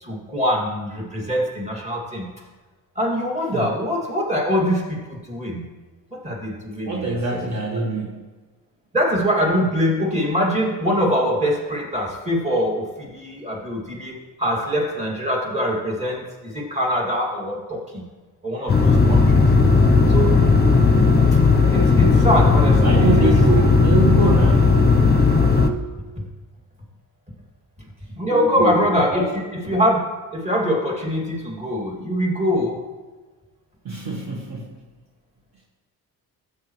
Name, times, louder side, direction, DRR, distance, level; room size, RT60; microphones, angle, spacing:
voice 1, 0.0-2.2 3.0-5.6 6.1-7.4 8.9-18.0 18.4-19.5 20.1-20.5 21.3-21.4 21.7-23.3 26.2-26.3 28.1-29.3 29.5-32.8, equal, 15° right, -1 dB, 2.5 m, -23 dB
voice 2, 6.8-8.2 22.8-24.9 28.3-28.8 29.1-29.3 33.8-34.7, right 2 dB, 45° right, -1 dB, 1.5 m, -24 dB
sound 1, 18.7-25.7, left 4 dB, 25° left, 0.9 m, -15 dB
13.0 x 8.2 x 3.2 m, 1.3 s
cardioid pair, 90°, 38 cm